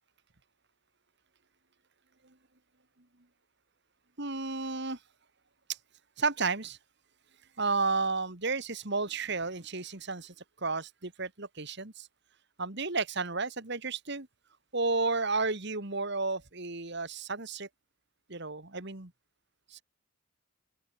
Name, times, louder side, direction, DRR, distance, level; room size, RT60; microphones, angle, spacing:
voice 1, 4.2-5.0 6.2-6.8 7.6-10.3 10.6-12.1 12.6-14.3 14.7-17.7 18.3-19.1 19.7-19.8, right 3 dB, 50° right, 2.3 m, -32 dB
open air
head